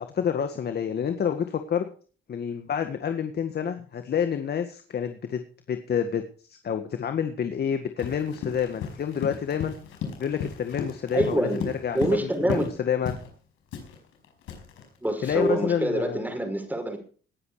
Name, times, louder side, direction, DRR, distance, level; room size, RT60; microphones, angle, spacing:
voice 1, 0.0-1.9 2.3-5.4 5.7-6.2 6.6-9.7 10.2-13.1 15.2-16.2, left 8 dB, 55° left, 7 dB, 1.9 m, -28 dB
Run, 8.0-12.8 13.1-13.3 13.7-15.6, left 6 dB, 90° left, 5.2 m, -35 dB
voice 2, 11.1-11.7 11.9-12.7 15.0-17.0, right 1 dB, 10° right, 5 dB, 5.5 m, -26 dB
19.0 x 9.9 x 4.9 m, 0.42 s
cardioid pair, 90°, 20 cm